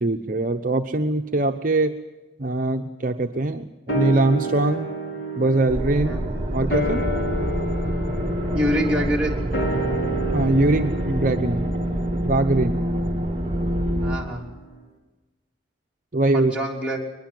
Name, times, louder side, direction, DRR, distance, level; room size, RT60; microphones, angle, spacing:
voice 1, 0.0-2.0 2.4-4.9 5.3-6.2 6.5-7.1 10.3-11.7 12.2-12.8 16.1-16.5, right 2 dB, 45° right, 4 dB, 0.9 m, -22 dB
sound 1, 3.9-14.5 14.8-14.9, right 2 dB, 60° left, 4.0 m, -31 dB
sound 2, 5.7-14.2, right 1 dB, 30° right, 1.7 m, -26 dB
voice 2, 8.5-9.4 14.0-14.5 16.3-17.0, equal, 5° right, -3 dB, 3.4 m, -25 dB
22.0 x 21.0 x 7.8 m, 1.1 s
head